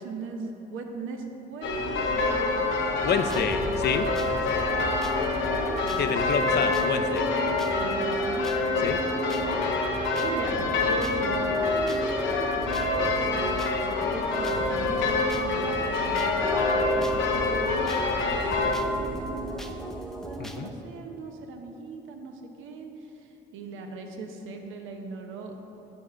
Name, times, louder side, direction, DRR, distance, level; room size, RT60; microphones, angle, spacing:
voice 1, 0.0-2.8 4.3-6.0 6.4-6.6 7.7-9.1 9.4-9.6 10.2-25.8, right 4 dB, 85° right, 4 dB, 0.8 m, -40 dB
sound 1, 1.6-18.8, left 3 dB, 80° left, 0.9 m, -26 dB
sound 2, 2.6-20.4, right 4 dB, 45° right, 0.5 m, -40 dB
voice 2, 3.0-4.1 6.0-7.3 8.8-9.0 20.4-20.7, left 7 dB, 55° left, 9 dB, 0.5 m, -28 dB
sound 3, 3.0-20.7, equal, ahead, 0.5 m, -40 dB
8.6 x 3.5 x 6.6 m, 3.0 s
cardioid pair, 90°, 20 cm